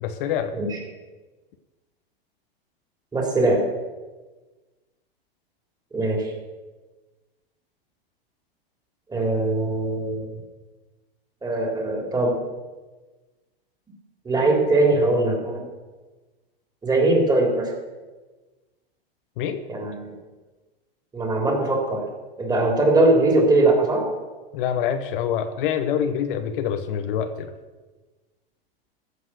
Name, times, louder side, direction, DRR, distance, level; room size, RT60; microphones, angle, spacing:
voice 1, 0.0-0.6 19.4-19.6 24.5-27.5, left 8 dB, 60° left, 9 dB, 1.1 m, -26 dB
voice 2, 3.1-3.6 5.9-6.3 9.1-10.3 11.4-12.4 14.3-15.7 16.8-17.7 19.7-20.1 21.1-22.0 22.4-24.1, right 2 dB, 15° right, 0 dB, 3.6 m, -21 dB
15.0 x 7.5 x 6.3 m, 1.3 s
hypercardioid pair, 120°, 30 cm